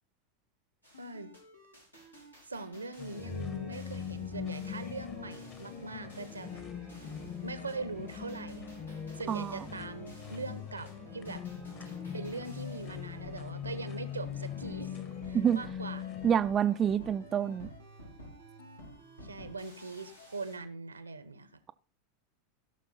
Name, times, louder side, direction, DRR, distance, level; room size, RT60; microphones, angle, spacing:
sound 1, 0.8-20.6, equal, 90° left, 3.2 m, -51 dB
voice 1, 1.0-1.3 2.5-6.6 7.4-8.7 9.2-11.4 12.1-15.0 15.2-16.1 19.2-21.7, right 3 dB, 80° right, 1.1 m, -41 dB
sound 2, 3.0-16.3, left 8 dB, 35° left, 1.7 m, -41 dB
voice 2, 9.3-9.6 15.3-15.6 16.2-17.7, right 8 dB, 25° right, 0.5 m, -27 dB
16.5 x 6.3 x 4.3 m
figure-of-eight pair, 85°, 0 cm